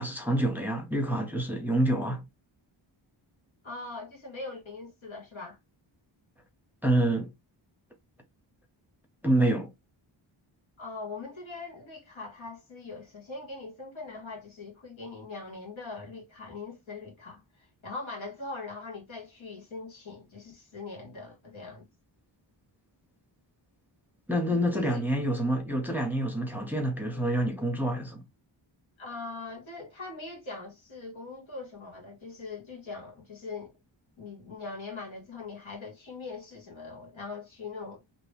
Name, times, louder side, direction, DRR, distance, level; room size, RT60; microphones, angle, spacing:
voice 1, 0.0-2.3 6.8-7.3 9.2-9.7 24.3-28.2, right 1 dB, 5° right, 0.6 m, -27 dB
voice 2, 3.6-5.6 10.8-21.9 24.5-25.0 29.0-33.7 34.2-38.0, left 3 dB, 80° left, 1.8 m, -41 dB
3.0 x 2.6 x 3.3 m
wide cardioid pair, 160°, 46 cm